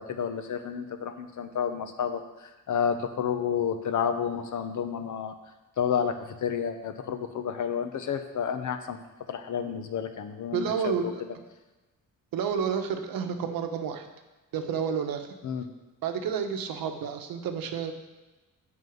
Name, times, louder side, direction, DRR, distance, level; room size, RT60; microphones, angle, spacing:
voice 1, 0.0-2.2 2.7-5.3 5.8-9.0 9.3-11.1 15.4-15.7, left 7 dB, 60° left, 8 dB, 1.0 m, -30 dB
voice 2, 10.5-11.2 12.3-14.1 14.5-15.3 16.0-17.9, right 7 dB, 80° right, 6 dB, 1.2 m, -30 dB
11.0 x 4.0 x 7.7 m, 1.1 s
cardioid pair, 135°, 34 cm